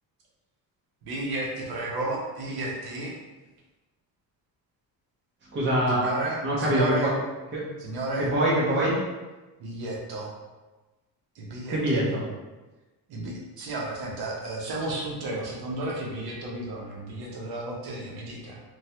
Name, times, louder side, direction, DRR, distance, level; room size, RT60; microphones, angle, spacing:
voice 1, 1.0-3.1 5.9-7.1 7.8-8.3 9.6-10.3 11.4-12.2 13.1-18.6, right 2 dB, 65° right, -3 dB, 0.7 m, -33 dB
voice 2, 5.5-6.1 6.4-7.1 7.5-7.6 8.2-8.9 11.7-12.2, right 1 dB, 30° right, -5 dB, 0.7 m, -24 dB
3.0 x 2.2 x 2.8 m, 1.2 s
cardioid pair, 150°, 40 cm